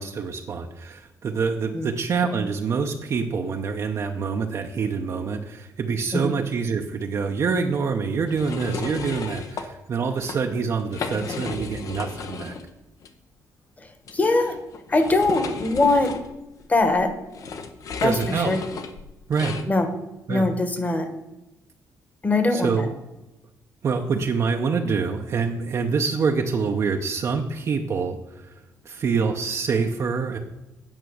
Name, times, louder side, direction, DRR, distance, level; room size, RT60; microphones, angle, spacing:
voice 1, 0.0-12.5 18.0-18.5 19.3-19.5 20.3-20.5 22.5-22.9 23.8-28.5 28.8-30.4, right 5 dB, 50° right, 3 dB, 0.8 m, -26 dB
sound 1, 8.3-9.7 10.1-10.4 10.8-12.7 13.0-13.1 14.1-19.7, left 5 dB, 65° left, 1.0 m, -34 dB
voice 2, 14.1-14.5 14.9-16.1 16.7-17.1 18.0-18.6 19.7-19.9 20.3-21.1 22.2-22.9, left 2 dB, 25° left, 8 dB, 1.4 m, -21 dB
9.1 x 5.7 x 6.3 m, 0.98 s
cardioid pair, 100°, 6 cm